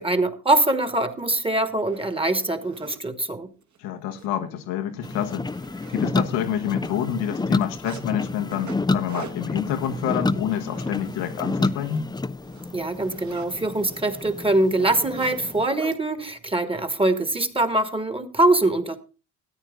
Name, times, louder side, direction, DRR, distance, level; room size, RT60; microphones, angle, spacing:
voice 1, 0.0-3.5 12.7-19.0, right 2 dB, 15° right, 1.5 m, -23 dB
Zipper (clothing), 1.2-1.3 1.7-3.0 3.6-3.8 4.1-4.3 4.6-4.7 5.1-6.4 6.6-8.0 8.5-11.4 11.8-12.0 12.4-16.0 17.0-17.7, right 7 dB, 50° right, 1.6 m, -43 dB
voice 2, 3.8-5.4 5.9-12.1, left 9 dB, 85° left, 1.6 m, -28 dB
sound 1, 5.0-15.7, left 3 dB, 10° left, 0.5 m, -29 dB
13.5 x 9.1 x 3.8 m
supercardioid pair, 70°, 38 cm